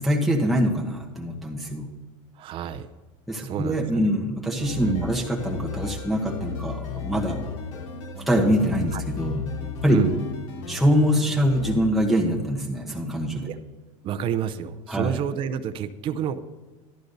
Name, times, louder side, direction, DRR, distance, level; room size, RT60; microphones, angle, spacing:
voice 1, 0.0-1.9 3.3-7.4 8.2-9.4 9.8-10.0 10.7-13.5 14.9-15.2, equal, ahead, -3 dB, 1.1 m, -24 dB
voice 2, 2.4-2.9 3.4-4.1 4.8-5.1 8.9-9.0 9.9-10.1 13.5-13.6 14.0-16.4, right 9 dB, 35° right, 9 dB, 0.5 m, -29 dB
sound 1, 4.6-11.8, left 6 dB, 80° left, 1.5 m, -34 dB
16.5 x 11.5 x 2.7 m, 1.2 s
supercardioid pair, 140°, 16 cm